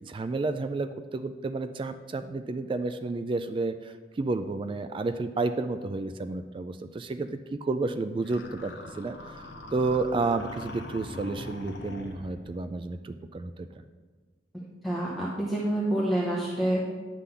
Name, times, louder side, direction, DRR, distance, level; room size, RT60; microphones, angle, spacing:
voice 1, 0.0-13.7, right 3 dB, 30° right, 10 dB, 0.3 m, -31 dB
sound 1, 8.2-12.6, left 1 dB, 75° left, 0.9 m, -42 dB
voice 2, 14.8-16.8, right 1 dB, ahead, -5 dB, 0.9 m, -27 dB
9.8 x 3.8 x 6.8 m, 1.4 s
head